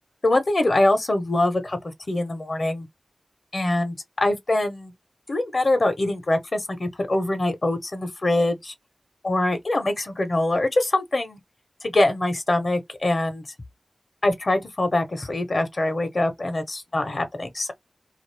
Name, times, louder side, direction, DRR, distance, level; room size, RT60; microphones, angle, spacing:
voice 1, 0.2-1.8 2.1-2.9 3.5-4.9 5.3-8.7 9.2-11.4 11.8-13.4 14.2-17.7, left 2 dB, 60° left, 0.9 m, -23 dB
2.5 x 2.4 x 3.2 m
wide cardioid pair, 60°, 0 cm